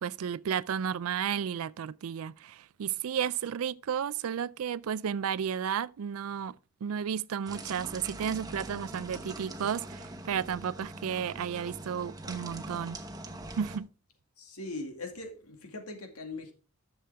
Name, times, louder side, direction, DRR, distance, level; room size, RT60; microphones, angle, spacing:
voice 1, 0.0-13.0 13.6-13.9, right 8 dB, 70° right, 0.4 m, -33 dB
sound 1, 7.5-13.8, right 2 dB, 15° right, 1.0 m, -43 dB
voice 2, 14.4-16.5, left 2 dB, 80° left, 2.2 m, -40 dB
11.5 x 7.0 x 3.4 m
head